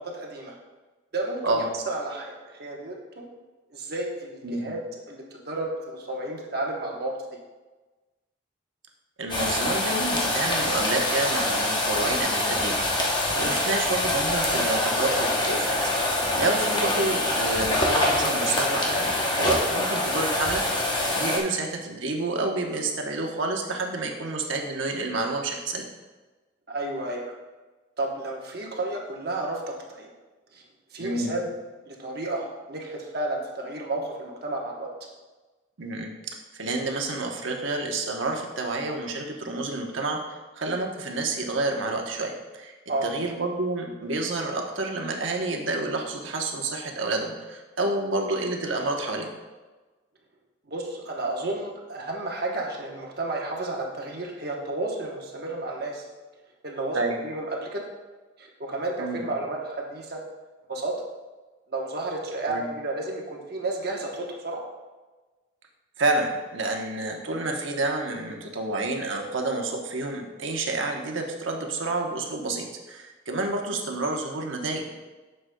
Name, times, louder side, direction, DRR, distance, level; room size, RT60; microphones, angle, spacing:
voice 1, 0.1-0.6 1.1-3.2 3.7-4.8 5.1-7.1 13.3-13.6 26.7-27.3 28.0-30.1 30.5-30.6 30.9-31.5 31.9-34.9 42.9-43.1 50.7-56.0 56.6-57.8 58.4-60.2 60.7-60.9 61.7-64.6 74.2-74.3, right 2 dB, 55° right, -1 dB, 1.1 m, -32 dB
voice 2, 4.4-4.7 9.2-12.8 13.4-15.7 16.4-20.6 21.1-25.9 31.0-31.3 35.8-36.1 36.6-40.2 40.6-42.7 43.0-49.3 56.9-57.2 59.0-59.2 62.5-62.6 66.0-74.9, right 2 dB, 85° right, 2 dB, 1.0 m, -29 dB
sound 1, 9.3-21.4, left 1 dB, 25° left, 0.9 m, -25 dB
9.9 x 6.7 x 2.3 m, 1.2 s
head